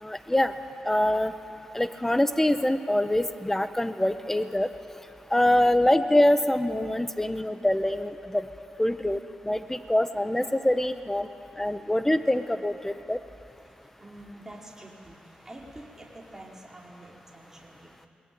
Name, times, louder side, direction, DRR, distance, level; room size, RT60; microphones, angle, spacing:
voice 1, 0.0-0.5 0.8-1.3 1.7-4.7 5.3-8.5 8.8-9.2 9.4-11.3 11.6-13.2, left 1 dB, 10° left, 10 dB, 1.3 m, -24 dB
voice 2, 13.5-18.1, right 1 dB, 15° right, -2 dB, 4.5 m, -47 dB
21.0 x 21.0 x 9.3 m, 2.7 s
cardioid pair, 60°, 3 cm